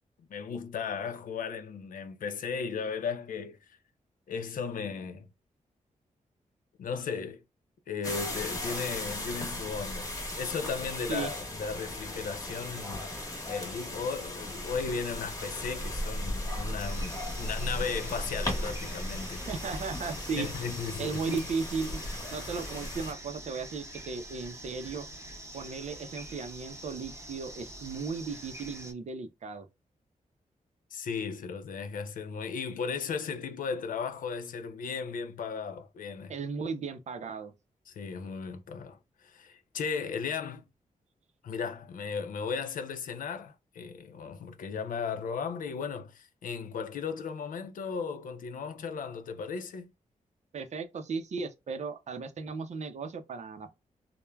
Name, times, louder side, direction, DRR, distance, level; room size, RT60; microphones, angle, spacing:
voice 1, 0.3-3.6 4.3-5.3 6.8-7.4 7.9-19.4 20.3-21.4 30.9-36.3 37.9-40.6 41.4-49.9, left 5 dB, 85° left, 0.5 m, -36 dB
sound 1, 8.0-23.1, left 1 dB, 25° left, 1.0 m, -37 dB
sound 2, 16.8-28.9, right 1 dB, 20° right, 0.7 m, -45 dB
voice 2, 19.5-20.5 21.0-22.0 22.3-25.1 25.5-29.7 36.3-37.5 50.5-53.7, right 5 dB, 60° right, 0.5 m, -36 dB
3.1 x 2.1 x 2.2 m
wide cardioid pair, 115°, 14 cm